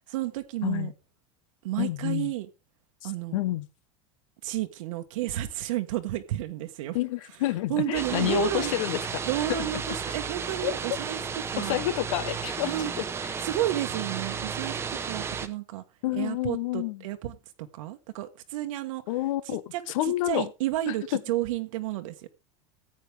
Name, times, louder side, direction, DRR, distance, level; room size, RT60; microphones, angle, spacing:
voice 1, 0.1-0.9 1.6-2.5 3.0-3.4 4.4-7.0 7.7-8.7 9.2-11.2 11.5-11.9 12.7-12.9 13.4-14.8 15.0-15.8 16.1-19.0 19.4-22.3, right 14 dB, 80° right, 1.2 m, -31 dB
voice 2, 0.6-0.9 1.8-2.3 3.0-3.7 6.9-9.2 9.5-9.6 10.6-10.7 11.6-12.9 13.2-13.3 16.0-17.0 19.1-20.5 20.9-21.2, left 15 dB, 75° left, 1.0 m, -29 dB
sound 1, 7.9-15.5, right 6 dB, 15° right, 0.8 m, -33 dB
14.5 x 8.8 x 3.4 m
supercardioid pair, 160°, 17 cm